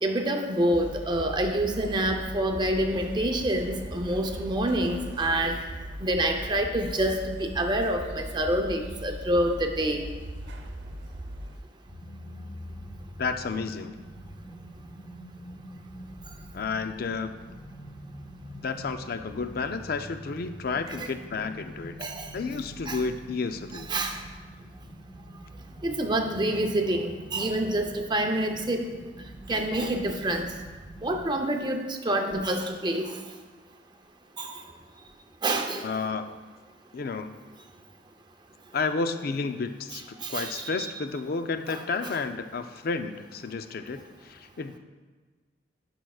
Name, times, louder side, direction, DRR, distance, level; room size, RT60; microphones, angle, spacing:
voice 1, 0.0-5.6 6.0-10.0 21.0-21.1 22.0-22.3 22.9-23.0 23.9-24.2 25.8-28.9 29.5-30.5 31.0-33.1 34.4-34.5 35.4-35.9 40.2-40.7 41.7-42.1, right 1 dB, 25° right, 4 dB, 0.6 m, -27 dB
sound 1, 0.7-11.6, right 1 dB, 70° right, 0.9 m, -39 dB
sound 2, 11.9-31.3, equal, 90° left, 2.5 m, -45 dB
voice 2, 13.2-13.9 16.5-17.4 18.6-23.9 35.8-36.2 36.9-37.3 38.7-44.8, left 4 dB, 55° left, 9 dB, 0.4 m, -31 dB
13.5 x 6.1 x 2.4 m, 1.4 s
head